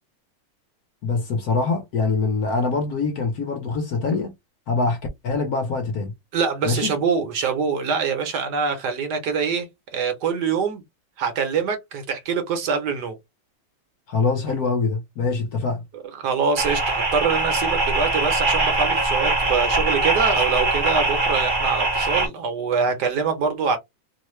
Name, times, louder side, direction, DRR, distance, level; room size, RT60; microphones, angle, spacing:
voice 1, 1.0-4.3 4.7-5.0 5.2-6.1 6.6-6.9 14.1-15.8, left 4 dB, 65° left, 1.0 m, -24 dB
voice 2, 6.3-9.7 9.9-10.8 11.2-13.2 16.2-23.8, right 5 dB, 65° right, 1.1 m, -24 dB
sound 1, 16.6-22.3, right 2 dB, 35° right, 0.9 m, -22 dB
3.1 x 2.1 x 3.0 m
omnidirectional pair, 2.1 m